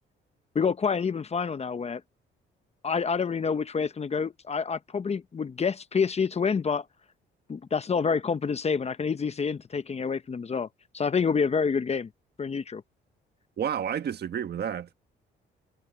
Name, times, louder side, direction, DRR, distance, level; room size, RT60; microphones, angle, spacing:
voice 1, 0.5-2.0 2.8-6.9 7.5-10.7 10.9-12.1 12.4-12.8, left 5 dB, 30° left, 0.8 m, -27 dB
voice 2, 13.6-14.9, right 8 dB, 55° right, 1.5 m, -30 dB
cardioid pair, 90°, 20 cm